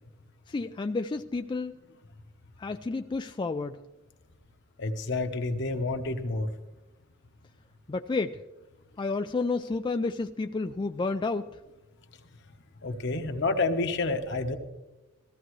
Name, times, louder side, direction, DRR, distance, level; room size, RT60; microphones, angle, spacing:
voice 1, 0.5-1.8 2.6-3.8 7.9-8.4 9.0-11.5, left 3 dB, 25° left, 7 dB, 0.3 m, -30 dB
voice 2, 4.8-6.5 12.8-14.6, left 3 dB, 60° left, 6 dB, 1.1 m, -29 dB
15.5 x 15.0 x 3.1 m, 1.1 s
head